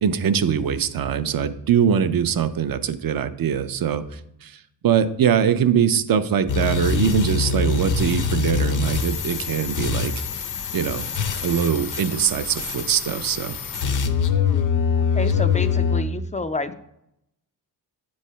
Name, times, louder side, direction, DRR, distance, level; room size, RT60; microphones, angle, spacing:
voice 1, 0.0-4.6 4.8-10.1 10.7-11.1 11.4-13.6, right 8 dB, 55° right, 11 dB, 0.5 m, -22 dB
sound 1, 6.5-16.0, left 5 dB, 45° left, 0.6 m, -24 dB
voice 2, 14.9-16.8, left 3 dB, 20° left, 10 dB, 0.3 m, -29 dB
8.2 x 3.2 x 5.5 m, 0.79 s
cardioid pair, 105°, 43 cm